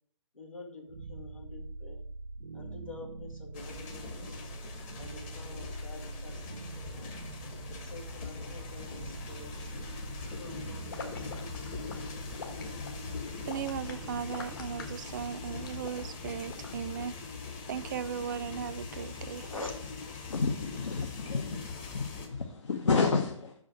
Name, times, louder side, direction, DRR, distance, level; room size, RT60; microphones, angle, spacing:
voice 1, 0.3-2.0 2.5-4.5 5.0-7.2 7.8-9.7 10.2-12.9 19.4-19.9, left 2 dB, 85° left, 2.0 m, -48 dB
sound 1, 0.9-19.9, right 3 dB, 85° right, 0.7 m, -45 dB
sound 2, 3.5-22.3, left 5 dB, 20° left, 1.0 m, -42 dB
sound 3, 10.9-17.0, left 5 dB, 40° left, 1.3 m, -45 dB
voice 2, 13.4-19.5, right 8 dB, 35° right, 0.4 m, -37 dB
voice 3, 20.3-23.5, left 4 dB, 65° left, 0.9 m, -30 dB
6.0 x 4.9 x 5.9 m
figure-of-eight pair, 135°, 17 cm